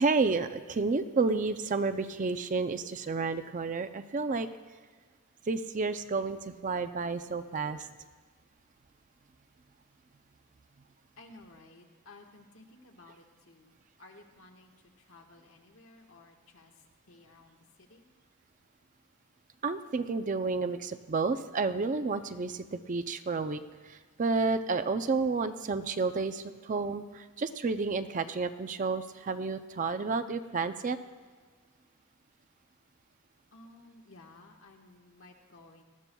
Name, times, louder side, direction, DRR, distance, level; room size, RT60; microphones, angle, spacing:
voice 1, 0.0-4.5 5.5-7.9 19.6-23.6 23.9-31.0, right 4 dB, 35° right, 10 dB, 0.4 m, -31 dB
voice 2, 11.2-14.7 15.0-16.7 17.0-18.0 33.5-35.8, left 2 dB, 70° left, 2 dB, 1.5 m, -55 dB
19.0 x 13.5 x 2.3 m, 1.5 s
head